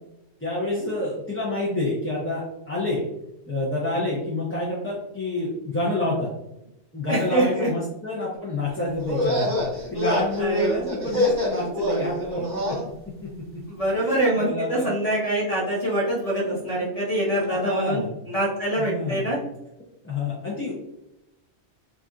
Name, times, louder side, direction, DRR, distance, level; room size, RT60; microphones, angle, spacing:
voice 1, 0.4-3.0 3.5-6.3 6.9-12.8 13.9-14.9 17.5-18.1 18.7-19.3 20.0-20.7, left 2 dB, 15° left, -7 dB, 0.5 m, -28 dB
voice 2, 7.1-7.7 10.4-10.8 13.7-18.0 18.3-19.4, right 1 dB, 35° left, -5 dB, 0.9 m, -24 dB
sound 1, 9.0-12.8, left 1 dB, 20° right, 1.3 m, -26 dB
4.1 x 2.5 x 2.3 m, 0.88 s
omnidirectional pair, 1.1 m